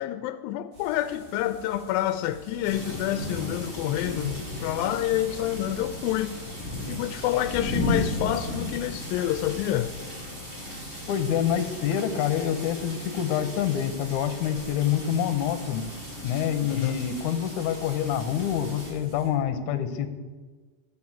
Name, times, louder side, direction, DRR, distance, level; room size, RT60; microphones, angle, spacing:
voice 1, 0.0-6.4 6.9-9.9 10.9-11.0 16.7-17.0, left 13 dB, 85° left, 11 dB, 2.3 m, -28 dB
sound 1, 0.7-19.3, equal, 65° right, 4.5 m, -48 dB
sound 2, 2.6-18.9, left 1 dB, 15° right, 4.7 m, -36 dB
voice 2, 11.1-15.9 16.2-20.1, left 9 dB, 70° left, 8 dB, 2.1 m, -27 dB
13.0 x 8.2 x 7.3 m, 1.4 s
omnidirectional pair, 4.1 m